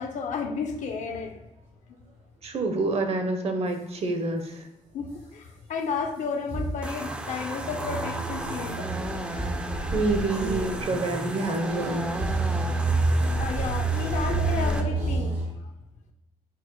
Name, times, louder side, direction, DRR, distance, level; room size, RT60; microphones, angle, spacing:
voice 1, 0.0-1.4 4.9-8.9 13.3-15.7, left 5 dB, 60° left, 5 dB, 0.6 m, -32 dB
voice 2, 2.4-4.7 9.9-12.2, right 2 dB, 45° right, 5 dB, 0.7 m, -27 dB
sound 1, 6.5-15.5, right 3 dB, 75° right, 1.3 m, -29 dB
sound 2, 6.8-14.8, right 1 dB, 10° right, 0.4 m, -34 dB
4.6 x 2.0 x 4.6 m, 0.92 s
cardioid pair, 120°, 14 cm